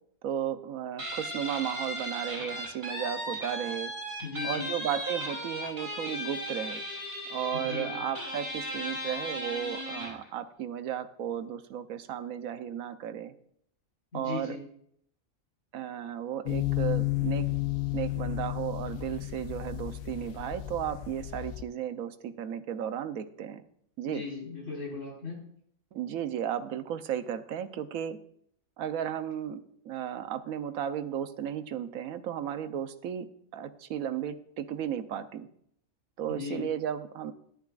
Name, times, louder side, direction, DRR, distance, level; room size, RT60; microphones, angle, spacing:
voice 1, 0.2-3.9 4.4-6.8 7.3-13.3 14.1-14.6 15.7-17.5 17.9-23.6 24.0-24.3 25.9-28.2 28.8-33.3 33.5-35.5 36.2-37.3, right 9 dB, 85° right, 10 dB, 1.2 m, -34 dB
Guitar, 1.0-10.2, equal, 35° right, 5.5 m, -36 dB
voice 2, 4.2-4.7 7.5-8.0 14.1-14.6 24.1-25.4 36.3-36.7, left 4 dB, 60° left, -3 dB, 4.6 m, -37 dB
sound 1, 16.5-21.6, left 17 dB, 85° left, 1.1 m, -32 dB
14.0 x 11.5 x 2.4 m, 0.68 s
omnidirectional pair, 1.4 m